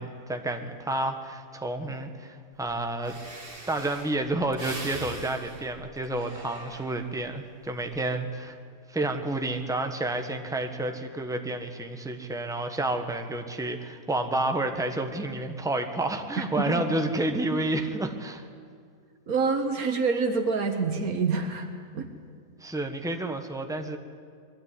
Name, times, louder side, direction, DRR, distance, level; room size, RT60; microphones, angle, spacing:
voice 1, 0.0-3.2 3.7-8.5 8.9-18.4 22.6-24.0, right 2 dB, ahead, 5 dB, 1.3 m, -30 dB
Breathing, 2.7-2.8 3.0-7.3 7.7-8.1, right 2 dB, 40° right, 2.3 m, -42 dB
voice 2, 19.3-21.7 21.9-22.1, right 4 dB, 75° right, 5 dB, 1.7 m, -26 dB
22.0 x 13.0 x 9.8 m, 2.2 s
omnidirectional pair, 1.5 m